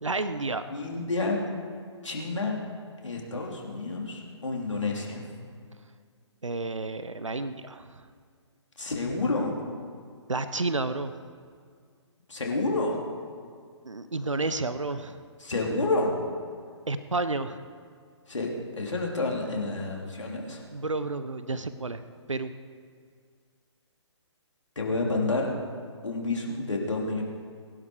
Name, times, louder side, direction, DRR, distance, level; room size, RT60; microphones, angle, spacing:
voice 1, 0.0-0.8 6.4-8.0 10.3-11.1 13.8-15.2 16.9-17.6 20.7-22.0 22.3-22.5, right 3 dB, 80° right, 12 dB, 0.8 m, -31 dB
voice 2, 0.7-1.4 2.0-2.6 3.0-5.2 8.8-9.5 12.3-13.0 15.4-16.2 18.3-20.6 24.8-25.5 26.0-27.2, left 3 dB, 75° left, -1 dB, 3.4 m, -29 dB
21.5 x 11.5 x 4.8 m, 2.1 s
figure-of-eight pair, 135°, 16 cm